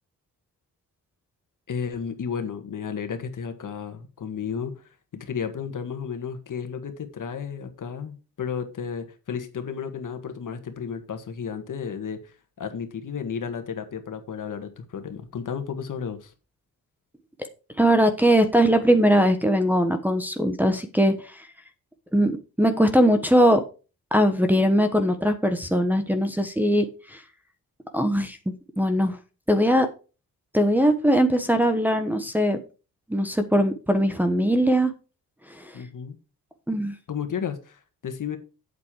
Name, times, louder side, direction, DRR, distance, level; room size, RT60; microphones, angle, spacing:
voice 1, 1.7-16.3 35.7-36.2 37.1-38.4, left 7 dB, 55° left, 7 dB, 1.8 m, -33 dB
voice 2, 17.8-21.5 22.1-23.6 24.1-27.2 27.9-28.4 28.8-29.2 29.5-29.9 30.5-32.6 33.1-34.9 35.5-35.8 36.7-37.0, equal, 5° right, 4 dB, 1.1 m, -21 dB
8.3 x 7.6 x 4.8 m, 0.33 s
cardioid pair, 110°, 37 cm